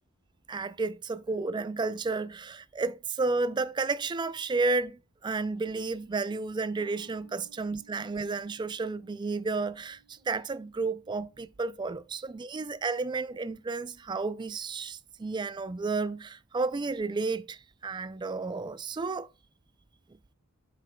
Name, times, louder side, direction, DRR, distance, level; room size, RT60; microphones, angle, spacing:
voice 1, 0.5-19.3, right 3 dB, 20° right, 0.3 m, -32 dB
sound 1, 6.8-13.5, right 6 dB, 40° left, 1.5 m, -63 dB
8.5 x 6.7 x 2.2 m
head